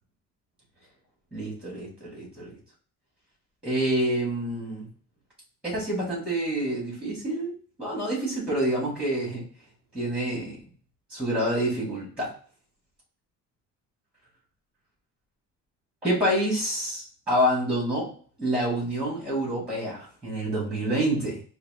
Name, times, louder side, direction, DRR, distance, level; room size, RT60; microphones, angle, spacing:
voice 1, 1.3-2.6 3.6-4.9 5.6-7.5 7.8-9.4 9.9-10.6 11.1-12.3 16.0-18.1 18.4-21.4, right 1 dB, 5° right, -4 dB, 2.1 m, -27 dB
4.7 x 2.4 x 3.6 m, 0.44 s
cardioid pair, 130°, 31 cm